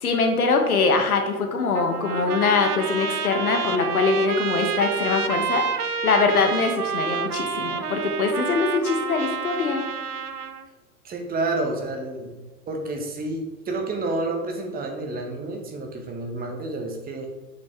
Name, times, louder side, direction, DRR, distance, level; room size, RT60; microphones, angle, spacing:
voice 1, 0.0-9.9, left 4 dB, 70° left, 5 dB, 1.3 m, -23 dB
Trumpet, 1.7-10.7, right 6 dB, 85° right, 0.7 m, -29 dB
voice 2, 11.0-12.3 12.7-17.3, right 2 dB, 20° right, 3 dB, 1.5 m, -29 dB
8.4 x 6.4 x 3.5 m, 1.2 s
figure-of-eight pair, 95°, 45 cm